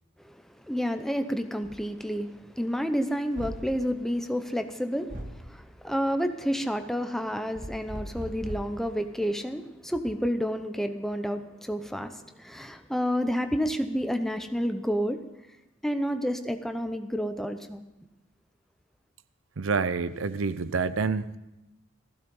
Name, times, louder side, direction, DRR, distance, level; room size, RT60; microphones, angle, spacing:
voice 1, 0.2-15.2 15.8-17.8, equal, ahead, 7 dB, 0.8 m, -30 dB
sound 1, 1.6-1.8 3.4-3.7 5.1-5.4 7.5-8.8, right 1 dB, 40° right, 2.1 m, -38 dB
voice 2, 19.6-21.4, right 4 dB, 85° right, 15 dB, 0.7 m, -28 dB
16.0 x 15.0 x 5.4 m, 0.93 s
head